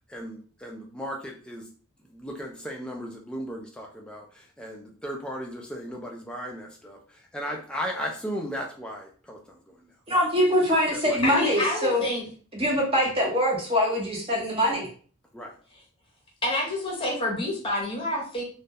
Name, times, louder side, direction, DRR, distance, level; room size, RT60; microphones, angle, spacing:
voice 1, 0.1-1.7 2.1-7.0 7.3-9.9 11.1-11.3 15.3-15.5, equal, 5° left, 0 dB, 0.3 m, -36 dB
voice 2, 10.1-12.0 12.5-14.9, equal, 25° right, -2 dB, 0.6 m, -23 dB
voice 3, 11.2-12.2 16.4-18.4, left 1 dB, 25° left, -3 dB, 0.7 m, -28 dB
2.2 x 2.0 x 2.7 m, 0.43 s
head